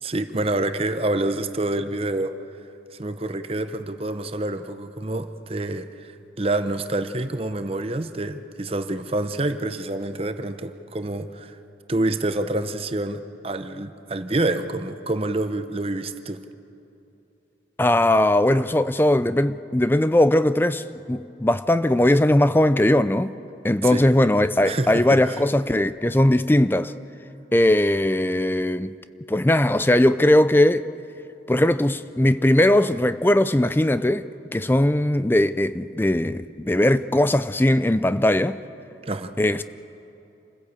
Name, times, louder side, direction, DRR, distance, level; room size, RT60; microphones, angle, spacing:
voice 1, 0.0-2.4 3.0-11.6 11.9-16.4 23.8-24.0 24.6-25.4 39.1-39.3, right 2 dB, 30° right, 0.8 m, -27 dB
voice 2, 17.8-23.3 23.6-26.9 27.5-28.9 29.3-30.9 31.5-38.6 39.4-39.6, left 1 dB, 10° left, 0.4 m, -19 dB
27.5 x 15.5 x 8.3 m
head